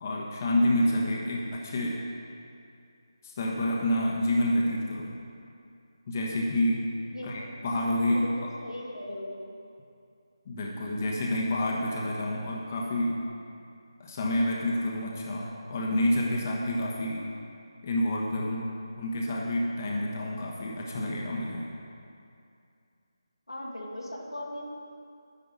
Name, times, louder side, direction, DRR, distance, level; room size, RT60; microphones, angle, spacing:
voice 1, 0.0-2.0 3.2-5.2 6.1-6.8 7.2-8.3 10.4-13.2 14.0-17.2 17.8-21.7, left 1 dB, 35° left, -2 dB, 1.3 m, -28 dB
voice 2, 7.1-7.5 8.1-9.6 23.5-24.6, left 1 dB, 90° left, -2 dB, 2.0 m, -39 dB
10.5 x 10.0 x 4.1 m, 2.5 s
figure-of-eight pair, 160°, 3 cm